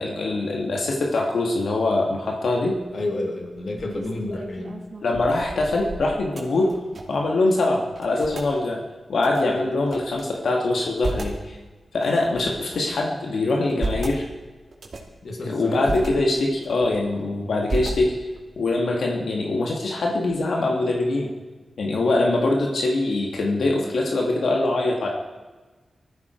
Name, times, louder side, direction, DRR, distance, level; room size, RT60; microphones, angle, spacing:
voice 1, 0.0-2.8 5.0-6.7 7.1-8.8 9.1-11.6 11.9-14.3 15.4-18.1 18.6-21.3 21.8-25.1, left 2 dB, 90° left, -1 dB, 2.2 m, -23 dB
sound 1, 2.7-3.0 3.5-7.3 7.5-7.6 7.9-8.5 9.2-10.2 10.7-11.4 12.0-13.0 13.5-14.2 14.7-15.2 15.6-16.1 16.6-17.2 17.7-18.4, right 2 dB, 55° right, 2.8 m, -33 dB
voice 2, 2.9-4.8 9.4-9.6 15.2-16.1 17.4-17.6, left 2 dB, 55° left, 2 dB, 2.6 m, -31 dB
20.0 x 14.0 x 4.6 m, 1.3 s
wide cardioid pair, 125°, 0 cm